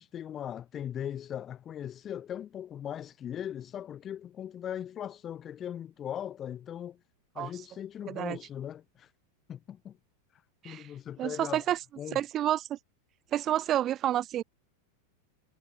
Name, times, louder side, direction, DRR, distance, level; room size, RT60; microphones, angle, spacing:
voice 1, 0.0-7.0 7.3-9.1 9.5-10.0 10.3-11.7 12.0-12.2, left 10 dB, 25° left, 4.8 m, -39 dB
voice 2, 8.1-8.4 10.6-10.9 11.2-11.8 12.1-12.8 13.3-14.4, right 12 dB, 25° right, 6.3 m, -29 dB
supercardioid pair, 155°, 0 cm